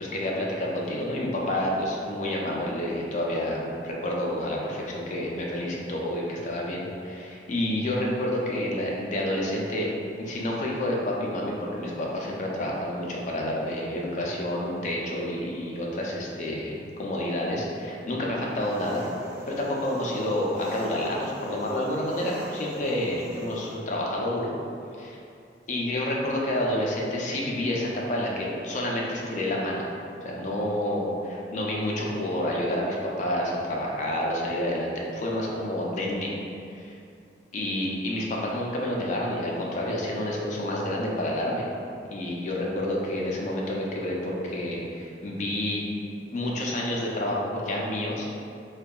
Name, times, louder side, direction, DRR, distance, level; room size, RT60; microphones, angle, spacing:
voice 1, 0.0-9.9 10.2-19.0 19.5-24.5 25.0-25.2 25.7-29.9 30.2-36.3 36.8-36.9 37.5-41.6 42.1-45.8 46.3-48.3, left 1 dB, 45° left, -2 dB, 0.4 m, -29 dB
Engine, 18.5-23.8, equal, 20° right, 1.3 m, -41 dB
2.7 x 2.2 x 2.2 m, 2.5 s
head